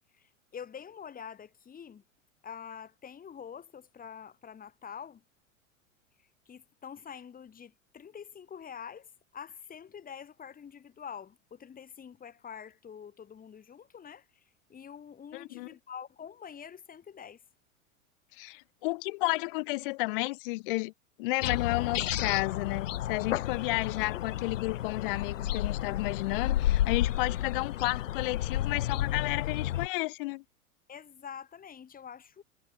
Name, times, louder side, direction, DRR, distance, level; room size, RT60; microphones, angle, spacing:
voice 1, 0.2-2.0 2.4-5.2 6.4-14.4 14.7-17.4 30.9-32.4, left 7 dB, 20° left, 3.5 m, -46 dB
voice 2, 15.3-15.7 18.4-20.9 21.2-30.4, left 24 dB, 40° left, 0.6 m, -32 dB
sound 1, 21.4-29.9, left 12 dB, 65° left, 1.2 m, -31 dB
figure-of-eight pair, 90°, 41 cm